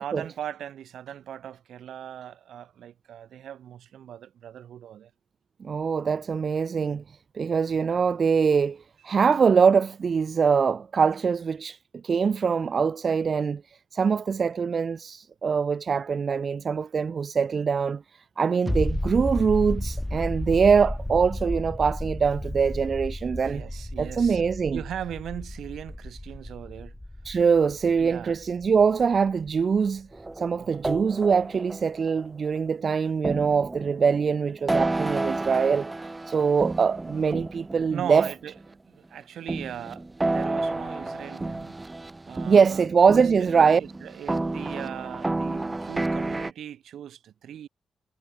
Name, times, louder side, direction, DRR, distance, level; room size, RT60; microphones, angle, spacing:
voice 1, 0.0-5.1 9.1-9.2 23.3-24.4 24.7-27.0 27.6-28.4 30.6-30.8 37.9-38.5 38.9-41.8 42.3-42.8 43.1-47.7, right 10 dB, 80° right, 2.7 m, -39 dB
voice 2, 5.6-7.0 7.3-11.8 12.0-13.6 13.9-18.0 18.4-23.6 24.0-24.8 27.2-30.1 30.4-35.9 36.3-38.3 42.5-43.8, right 6 dB, 50° right, 0.4 m, -23 dB
sound 1, 18.7-30.0 30.3-30.4, left 1 dB, 10° left, 0.6 m, -33 dB
sound 2, 30.1-32.6 33.2-38.7 39.5-46.5, right 2 dB, 20° right, 1.5 m, -31 dB
cardioid pair, 90°, 0 cm